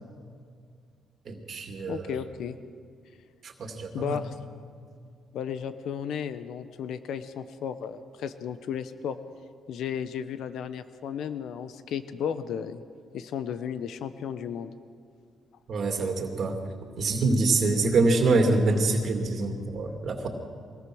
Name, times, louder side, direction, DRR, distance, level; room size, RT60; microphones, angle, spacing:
voice 1, 1.3-2.1 3.4-4.2 15.7-16.5 17.0-20.3, right 3 dB, 55° right, 3 dB, 2.5 m, -25 dB
voice 2, 1.9-2.6 3.9-4.4 5.3-9.2 9.7-12.8 13.1-14.7, left 8 dB, 75° left, 11 dB, 1.0 m, -34 dB
23.5 x 19.0 x 6.3 m, 2.2 s
cardioid pair, 90°, 0 cm